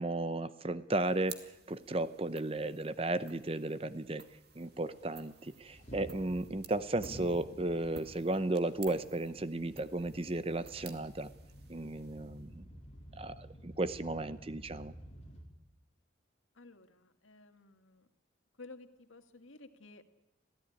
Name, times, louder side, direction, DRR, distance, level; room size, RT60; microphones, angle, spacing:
voice 1, 0.0-1.4 1.7-4.2 4.6-11.3 11.7-12.6 13.2-14.9, right 2 dB, 30° right, 14 dB, 0.8 m, -34 dB
sound 1, 0.9-12.6, right 7 dB, 55° right, 2.3 m, -55 dB
sound 2, 4.5-15.4, equal, 35° left, 4.4 m, -52 dB
voice 2, 16.6-18.1 18.6-20.0, left 3 dB, 90° left, 7 dB, 1.9 m, -54 dB
26.0 x 16.0 x 10.0 m, 0.95 s
head